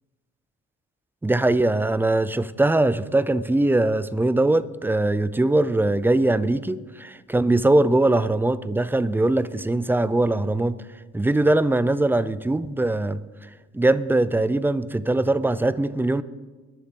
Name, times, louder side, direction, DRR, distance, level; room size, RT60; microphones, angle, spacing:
voice 1, 1.2-10.8 11.1-13.2 13.7-16.2, right 2 dB, 5° right, 16 dB, 0.4 m, -21 dB
20.5 x 7.2 x 3.7 m, 1.3 s
cardioid pair, 90°, 30 cm